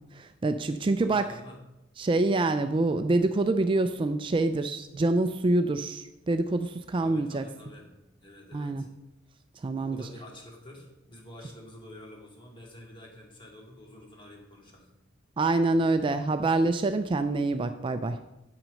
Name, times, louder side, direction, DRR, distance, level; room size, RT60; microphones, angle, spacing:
voice 1, 0.0-1.4 2.0-7.4 8.5-8.8 9.6-10.0 15.4-18.2, right 2 dB, 25° right, 9 dB, 0.3 m, -26 dB
voice 2, 1.0-1.6 2.6-2.8 7.0-7.9 8.2-8.9 9.9-14.9, left 1 dB, 25° left, 0 dB, 2.3 m, -48 dB
8.6 x 6.0 x 6.3 m, 0.93 s
head